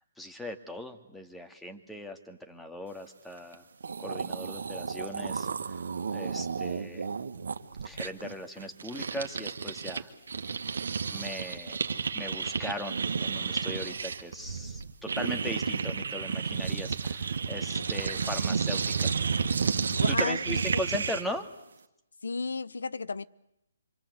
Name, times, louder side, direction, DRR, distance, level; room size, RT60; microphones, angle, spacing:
voice 1, 0.2-3.7 4.0-5.8 6.1-7.1 7.8-10.1 11.1-11.8 12.1-19.1 20.1-21.5, left 1 dB, 5° left, 2.2 m, -39 dB
sound 1, 3.5-3.6 3.8-10.0 10.3-21.4, right 5 dB, 65° right, 1.9 m, -32 dB
voice 2, 17.8-18.4 19.9-20.8 22.2-23.2, left 4 dB, 75° left, 1.0 m, -35 dB
27.0 x 25.0 x 8.2 m
hypercardioid pair, 145°, 0 cm